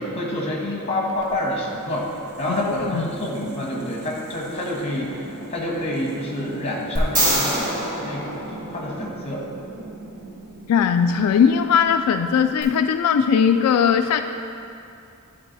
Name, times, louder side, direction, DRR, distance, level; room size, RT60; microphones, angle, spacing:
voice 1, 0.0-9.4, left 1 dB, 30° left, -2 dB, 1.2 m, -28 dB
sound 1, 1.1-12.2, right 2 dB, 75° right, 0.9 m, -40 dB
voice 2, 2.5-3.1 10.7-14.2, left 7 dB, 90° left, 10 dB, 0.3 m, -19 dB
sound 2, 7.0-9.2 12.6-12.7, right 1 dB, 35° right, 1.8 m, -24 dB
11.0 x 3.9 x 4.0 m, 2.6 s
head